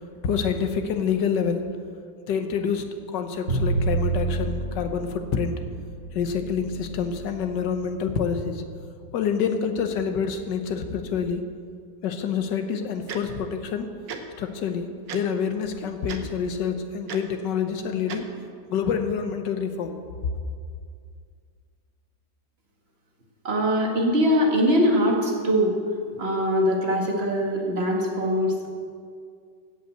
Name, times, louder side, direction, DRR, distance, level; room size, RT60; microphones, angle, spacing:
voice 1, 0.2-1.7 2.3-5.6 6.1-8.6 9.1-11.4 12.0-13.9 14.4-18.2 18.7-20.0, left 6 dB, 75° left, 7 dB, 1.6 m, -27 dB
Bowed string instrument, 3.5-9.6, right 3 dB, 50° right, 2.4 m, -30 dB
Tick-tock, 13.1-13.2 14.1-14.2 15.1-15.2 16.1-16.2 17.1-17.2 18.1-18.2, right 6 dB, 80° right, 1.6 m, -34 dB
voice 2, 23.4-25.8 26.2-28.6, equal, 35° right, -1 dB, 1.8 m, -22 dB
16.0 x 5.6 x 7.7 m, 2.2 s
omnidirectional pair, 2.0 m